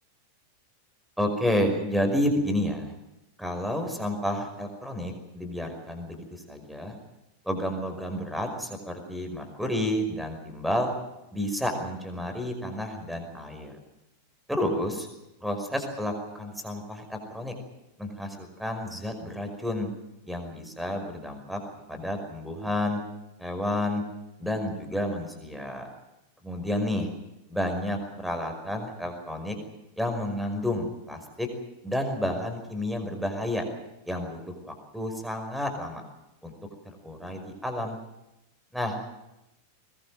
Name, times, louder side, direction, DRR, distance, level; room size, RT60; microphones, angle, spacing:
voice 1, 1.2-2.9 3.4-7.0 7.4-10.9 11.3-13.7 14.5-15.1 15.4-17.5 18.0-19.9 20.2-21.6 21.9-23.0 23.4-24.0 24.4-25.8 26.4-27.1 27.5-29.6 30.0-31.5 31.8-33.6 34.0-36.0 36.4-36.5 36.9-38.0 38.7-39.0, left 1 dB, ahead, 5 dB, 5.4 m, -30 dB
21.5 x 21.5 x 7.6 m, 0.91 s
figure-of-eight pair, 90°, 0 cm